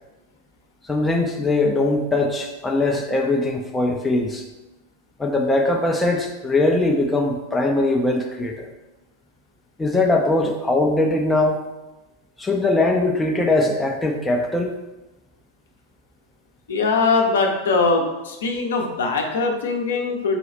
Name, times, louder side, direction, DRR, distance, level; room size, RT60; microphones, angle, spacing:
voice 1, 0.9-4.4 5.2-8.7 9.8-11.6 12.4-14.8, left 2 dB, 10° left, 2 dB, 0.4 m, -21 dB
voice 2, 16.7-20.4, left 4 dB, 65° left, 2 dB, 0.6 m, -21 dB
4.3 x 2.3 x 4.0 m, 1.0 s
figure-of-eight pair, 90°, 0 cm